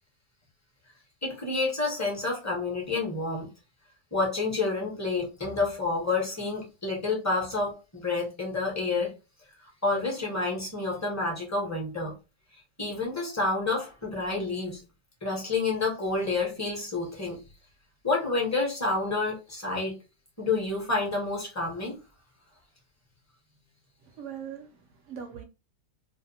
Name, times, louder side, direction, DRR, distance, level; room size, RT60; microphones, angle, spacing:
voice 1, 1.2-3.5 4.1-9.1 9.8-12.1 12.8-14.8 15.2-17.4 18.0-20.0 20.4-22.0, left 3 dB, 15° left, 0.7 m, -29 dB
voice 2, 24.0-25.4, right 8 dB, 65° right, 0.7 m, -41 dB
2.6 x 2.3 x 2.7 m
omnidirectional pair, 1.6 m